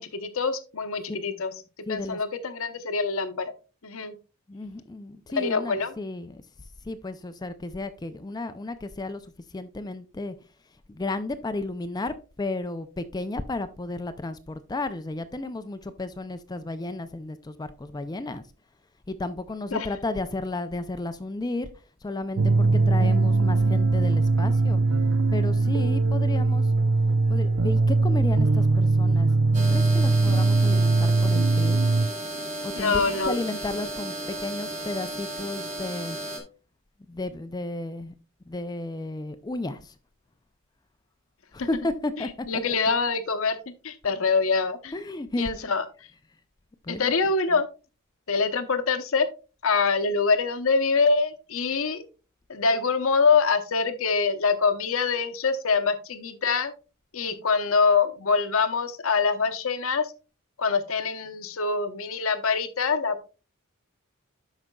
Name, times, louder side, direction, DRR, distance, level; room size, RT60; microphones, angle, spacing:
voice 1, 0.0-1.5 1.9-3.5 3.8-4.2 5.4-5.9 19.7-19.9 32.8-33.4 41.6-41.7 42.5-43.6 43.8-44.9 45.4-46.1 46.9-47.7 48.3-49.3 49.6-52.0 52.5-56.7 57.1-60.1 60.6-63.2, left 4 dB, 65° left, 0.8 m, -24 dB
voice 2, 1.9-2.2 4.5-6.4 6.8-9.2 9.5-10.3 10.9-18.4 19.1-21.7 22.0-24.8 25.3-26.7 27.3-29.3 29.7-31.8 32.6-34.1 34.4-36.2 37.1-38.1 38.5-39.9 41.5-42.8 44.9-45.5 46.8-47.1 47.5-47.6, left 2 dB, 20° left, 0.4 m, -33 dB
sound 1, 22.4-32.1, right 3 dB, 70° right, 0.6 m, -21 dB
sound 2, 29.5-36.4, right 1 dB, 30° right, 1.5 m, -34 dB
12.5 x 4.9 x 2.3 m
head